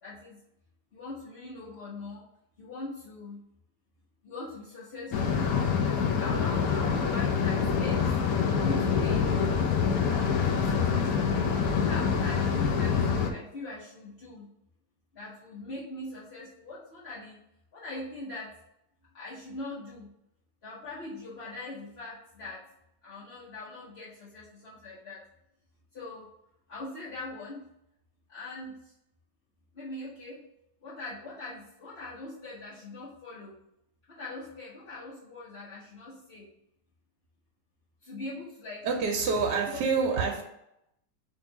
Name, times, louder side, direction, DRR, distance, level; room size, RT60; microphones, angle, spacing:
voice 1, 0.0-0.4 0.9-2.2 2.6-3.4 4.2-5.6 5.8-8.1 8.5-9.3 10.4-11.4 11.7-13.0 13.3-14.5 15.1-17.4 17.7-18.5 19.1-20.1 20.6-22.6 23.0-25.2 25.9-26.3 26.7-27.7 28.3-28.9 29.7-30.4 30.8-33.5 34.1-36.5 38.0-38.8 39.7-39.8, left 2 dB, 40° left, -10 dB, 1.2 m, -41 dB
sound 1, 5.1-13.3, left 6 dB, 65° left, 1.0 m, -26 dB
voice 2, 38.8-40.4, right 4 dB, 75° right, 1 dB, 1.3 m, -27 dB
3.8 x 3.1 x 4.4 m, 0.82 s
omnidirectional pair, 1.9 m